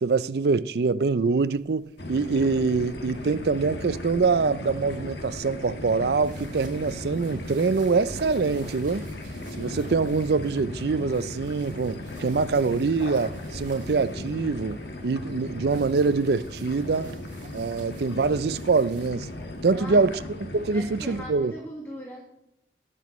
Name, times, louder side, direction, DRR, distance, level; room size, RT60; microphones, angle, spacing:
voice 1, 0.0-9.1 9.6-17.1 17.5-19.3 19.6-21.5, right 4 dB, 65° right, 0.4 m, -24 dB
sound 1, 1.4-20.2, right 2 dB, 45° right, 3.0 m, -50 dB
sound 2, 2.0-21.3, left 1 dB, 75° left, 1.6 m, -37 dB
voice 2, 19.7-20.1 20.7-22.2, equal, 15° left, 1.7 m, -40 dB
20.0 x 7.1 x 3.1 m
head